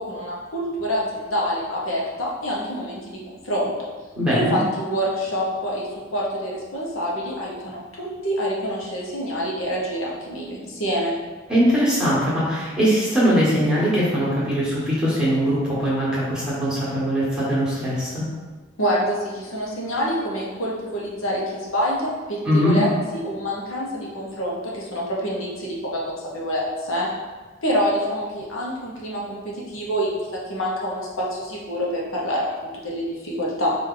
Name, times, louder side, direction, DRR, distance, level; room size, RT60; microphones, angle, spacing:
voice 1, 0.0-3.7 4.3-11.2 18.8-27.1 27.6-33.7, equal, 70° left, -4 dB, 0.9 m, -26 dB
voice 2, 4.1-4.6 11.5-18.2 22.4-22.8, equal, 5° right, -8 dB, 1.4 m, -21 dB
4.7 x 2.6 x 3.8 m, 1.3 s
head